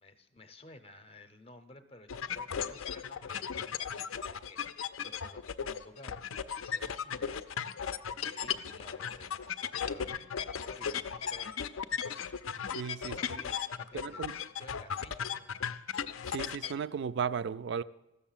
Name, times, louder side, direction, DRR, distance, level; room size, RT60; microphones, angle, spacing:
voice 1, 0.0-3.7 4.3-4.6 5.0-6.2 6.5-7.4 8.1-9.3 9.6-11.5 13.0-15.8, left 2 dB, 25° left, 0.6 m, -54 dB
sound 1, 2.1-16.7, left 7 dB, 65° left, 0.5 m, -36 dB
voice 2, 12.7-13.2 13.9-14.3 16.3-17.8, right 6 dB, 55° right, 0.3 m, -35 dB
14.5 x 6.8 x 7.3 m
head